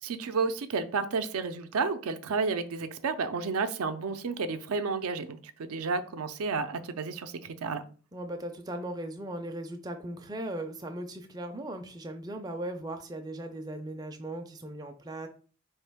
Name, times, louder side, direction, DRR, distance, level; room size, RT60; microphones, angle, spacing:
voice 1, 0.0-7.8, right 4 dB, 80° right, 10 dB, 0.5 m, -31 dB
voice 2, 8.1-15.3, right 1 dB, 15° right, 4 dB, 0.4 m, -38 dB
4.4 x 3.1 x 3.4 m, 0.39 s
head